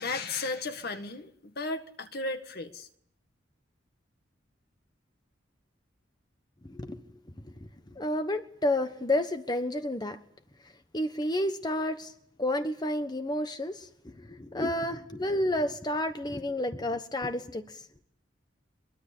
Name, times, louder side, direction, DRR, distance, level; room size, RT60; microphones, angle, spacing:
voice 1, 0.0-2.9, left 3 dB, 60° left, 1.9 m, -35 dB
voice 2, 6.6-7.1 7.4-10.2 10.6-12.1 12.4-17.9, left 1 dB, 25° left, 1.3 m, -31 dB
23.5 x 23.0 x 8.6 m
head